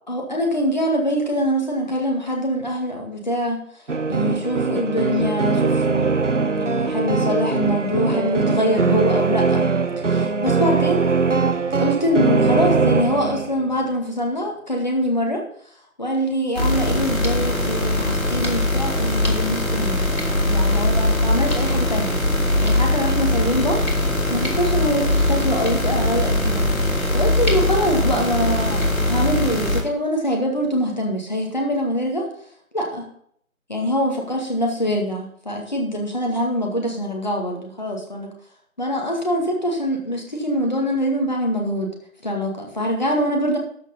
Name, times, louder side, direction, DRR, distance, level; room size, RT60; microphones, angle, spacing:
voice 1, 0.1-3.6 4.1-9.7 10.0-11.1 11.8-15.4 16.0-22.2 22.6-23.8 24.3-26.7 27.1-32.3 32.7-33.1 33.7-38.3 38.8-41.9 42.2-43.6, equal, 30° left, 1 dB, 2.1 m, -24 dB
sound 1, 3.9-13.7, right 4 dB, 60° right, 0.7 m, -21 dB
sound 2, 16.5-29.8, left 1 dB, 75° left, 3.3 m, -21 dB
12.5 x 6.1 x 5.5 m, 0.65 s
figure-of-eight pair, 165°, 42 cm